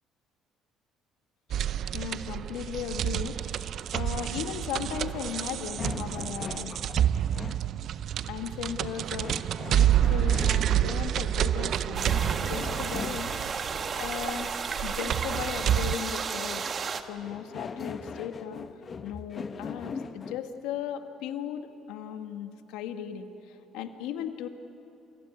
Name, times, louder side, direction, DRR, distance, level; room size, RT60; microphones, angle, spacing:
sound 1, 1.5-16.0, right 10 dB, 60° right, 0.6 m, -28 dB
voice 1, 1.9-6.9 8.3-13.3 13.9-14.5 14.8-16.7 17.1-18.6 19.0-24.5, left 9 dB, 80° left, 7 dB, 1.6 m, -37 dB
sound 2, 5.8-7.6 9.2-10.9 12.2-13.5 17.2-20.5, left 5 dB, 40° left, 1.1 m, -39 dB
sound 3, 11.9-17.0, right 6 dB, 45° right, 1.5 m, -33 dB
27.5 x 16.5 x 9.6 m, 2.8 s
supercardioid pair, 70°, 0 cm